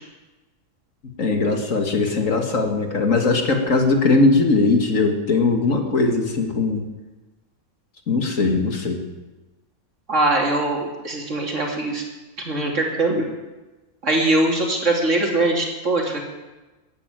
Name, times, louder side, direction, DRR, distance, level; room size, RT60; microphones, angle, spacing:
voice 1, 1.2-6.8 8.1-9.0, left 3 dB, 65° left, 4 dB, 2.3 m, -20 dB
voice 2, 10.1-12.0 12.4-13.3 14.0-16.2, right 2 dB, 60° right, 0 dB, 3.3 m, -21 dB
15.0 x 10.0 x 9.1 m, 1.1 s
omnidirectional pair, 1.5 m